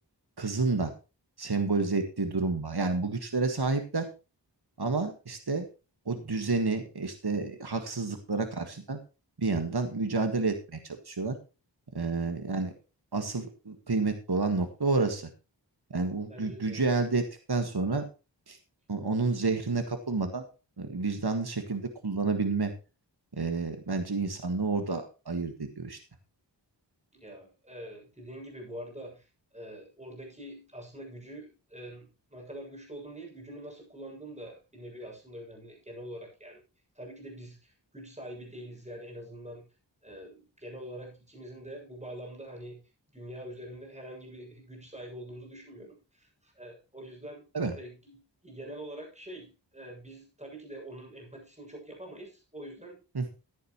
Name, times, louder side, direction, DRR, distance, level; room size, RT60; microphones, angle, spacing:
voice 1, 0.4-0.9 1.4-4.1 4.8-5.6 6.0-9.0 9.4-11.4 11.9-12.7 13.1-15.3 15.9-18.0 18.5-18.6 18.9-20.4 20.8-22.7 23.3-26.0 47.5-47.8 53.1-53.3, right 3 dB, 60° right, 6 dB, 1.8 m, -29 dB
voice 2, 16.3-16.8 27.1-29.3 29.5-36.6 37.0-39.7 40.0-42.8 43.1-47.4 47.7-53.0, right 1 dB, 15° right, 0 dB, 7.2 m, -45 dB
15.0 x 10.5 x 3.1 m, 0.30 s
wide cardioid pair, 45°, 44 cm